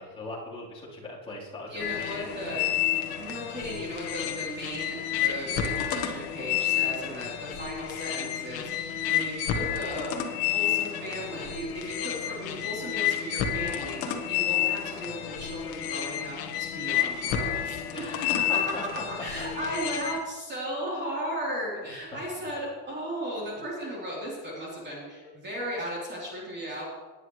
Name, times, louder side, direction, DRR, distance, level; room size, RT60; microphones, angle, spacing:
voice 1, 0.0-2.7 17.9-18.8 19.6-19.7 21.8-21.9 23.4-23.6, left 2 dB, 10° left, -7 dB, 3.6 m, -40 dB
voice 2, 1.7-2.6 3.2-18.7 19.1-26.8, equal, 20° right, -5 dB, 3.6 m, -36 dB
sound 1, 1.8-20.2, left 10 dB, 45° left, 1.5 m, -30 dB
19.0 x 10.0 x 3.2 m, 1.4 s
cardioid pair, 155°, 49 cm